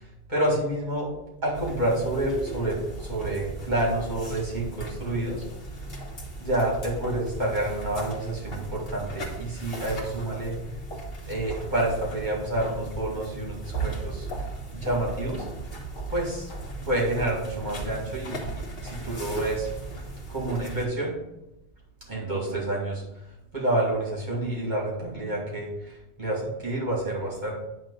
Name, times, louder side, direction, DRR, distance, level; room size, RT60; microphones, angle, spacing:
voice 1, 0.3-1.1 1.4-5.4 6.4-10.6 11.2-14.3 14.7-15.5 16.1-16.5 16.8-19.7 20.3-21.2 22.1-23.0 23.5-27.5, right 1 dB, 45° right, -4 dB, 2.3 m, -28 dB
sound 1, 1.5-20.8, right 2 dB, 60° left, 1.6 m, -37 dB
8.8 x 3.1 x 6.2 m, 0.87 s
omnidirectional pair, 1.1 m